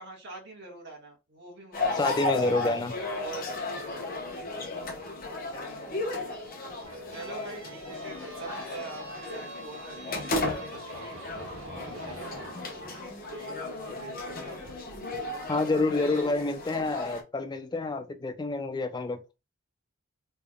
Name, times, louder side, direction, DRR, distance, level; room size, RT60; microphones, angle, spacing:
voice 1, 0.0-2.5 3.2-4.2 7.1-11.2 11.6-14.7, right 2 dB, 60° right, 1.5 m, -45 dB
sound 1, 1.7-17.2, left 2 dB, 45° left, 0.9 m, -35 dB
voice 2, 2.0-2.9 5.4-5.7 12.6-12.7 15.5-19.2, left 3 dB, 20° left, 0.4 m, -28 dB
sound 2, 6.8-13.1, right 2 dB, 80° right, 1.5 m, -45 dB
3.4 x 3.4 x 2.2 m
head